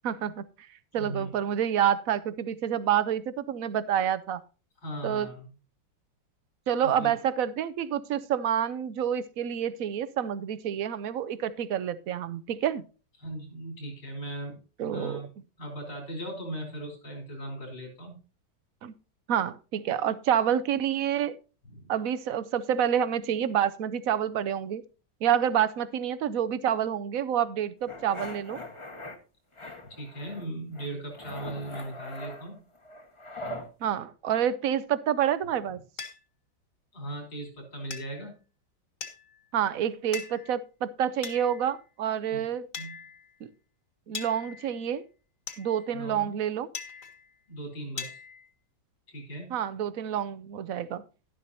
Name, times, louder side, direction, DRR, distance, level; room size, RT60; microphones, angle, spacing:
voice 1, 0.0-0.4 0.9-4.4 5.0-5.3 6.7-12.8 14.8-15.2 18.8-18.9 19.3-21.4 21.9-24.8 25.2-28.6 33.8-35.8 39.5-42.7 43.4-43.5 44.1-45.0 45.6-46.7 49.5-51.0, right 9 dB, 70° right, 0.8 m, -28 dB
voice 2, 0.9-1.3 4.8-5.5 6.8-7.1 13.2-14.6 14.9-15.3 15.6-18.2 21.7-21.9 29.6-32.6 36.9-38.4 42.3-42.4 42.8-43.0 45.9-46.3 47.5-48.2 49.1-49.5, right 1 dB, 65° left, 4.4 m, -38 dB
sound 1, 27.9-29.2 29.6-30.5 30.7-33.7, left 1 dB, 20° left, 1.0 m, -41 dB
sound 2, 36.0-36.2 37.9-38.3 39.0-39.5 40.1-40.6 41.2-41.8 42.7-43.4 44.1-44.9 45.5-46.0 46.7-47.4 48.0-48.5, left 6 dB, 40° left, 1.9 m, -41 dB
11.5 x 11.5 x 2.7 m
omnidirectional pair, 2.2 m